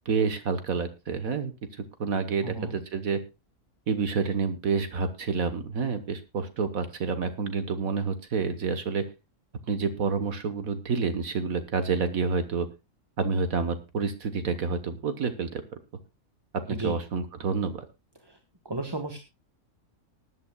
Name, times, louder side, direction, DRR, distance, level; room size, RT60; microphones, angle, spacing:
voice 1, 0.1-1.5 2.0-3.2 3.9-9.0 9.7-12.7 13.2-15.6 16.7-17.8, right 5 dB, 65° right, 10 dB, 1.6 m, -28 dB
voice 2, 2.4-2.7 16.7-16.9 18.3-18.4 18.6-19.2, right 2 dB, 15° right, 5 dB, 1.3 m, -33 dB
19.5 x 11.5 x 2.3 m, 0.25 s
omnidirectional pair, 1.6 m